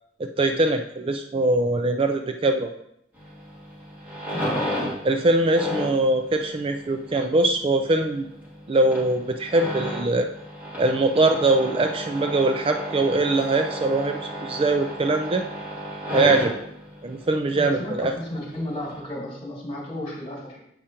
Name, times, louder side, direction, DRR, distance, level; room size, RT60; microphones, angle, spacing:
voice 1, 0.2-2.7 5.1-8.3 8.7-10.3 10.8-15.4 16.1-16.5 17.0-18.1, right 2 dB, 30° right, 6 dB, 0.4 m, -22 dB
sound 1, 3.1-19.0, equal, 10° right, 2.5 m, -33 dB
voice 2, 4.3-4.9 6.9-7.0 17.6-20.6, left 1 dB, 30° left, -2 dB, 2.1 m, -33 dB
7.7 x 4.9 x 4.3 m, 0.73 s
head